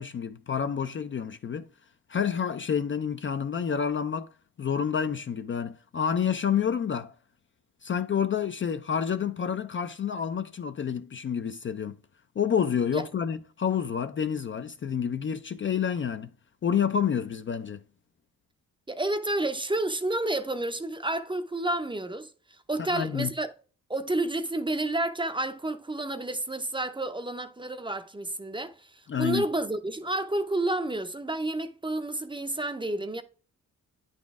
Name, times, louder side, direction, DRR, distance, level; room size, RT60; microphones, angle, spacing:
voice 1, 0.0-1.7 2.1-4.3 4.6-7.1 7.8-12.0 12.4-16.3 16.6-17.8 22.8-23.3 29.1-29.5, left 7 dB, 35° left, 0.4 m, -29 dB
voice 2, 18.9-22.3 22.7-23.5 23.9-33.2, right 2 dB, 15° right, 0.6 m, -30 dB
9.2 x 4.1 x 3.5 m
cardioid pair, 75°, 33 cm